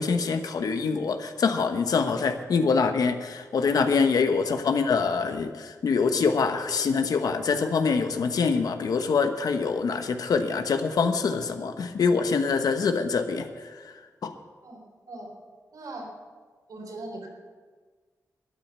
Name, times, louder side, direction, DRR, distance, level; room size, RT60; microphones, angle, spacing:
voice 1, 0.0-13.9 14.2-14.3, left 5 dB, 90° left, 7 dB, 1.1 m, -25 dB
voice 2, 14.6-15.3 15.7-16.1 16.7-17.3, right 2 dB, 80° right, 0 dB, 3.7 m, -40 dB
12.5 x 9.4 x 8.1 m, 1.5 s
wide cardioid pair, 120°, 6 cm